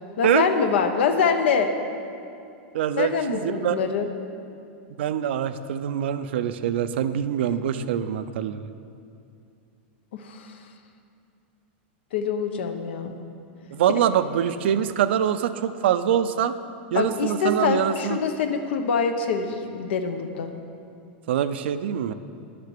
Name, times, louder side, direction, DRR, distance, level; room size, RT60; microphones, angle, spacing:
voice 1, 0.2-1.7 2.9-4.1 10.2-10.5 12.1-13.2 16.9-20.5, left 5 dB, 80° left, 7 dB, 1.0 m, -24 dB
voice 2, 2.7-3.8 5.0-8.6 13.7-16.5 16.9-18.2 21.3-22.1, right 9 dB, 75° right, 12 dB, 0.5 m, -24 dB
10.5 x 6.7 x 6.7 m, 2.6 s
supercardioid pair, 165°, 6 cm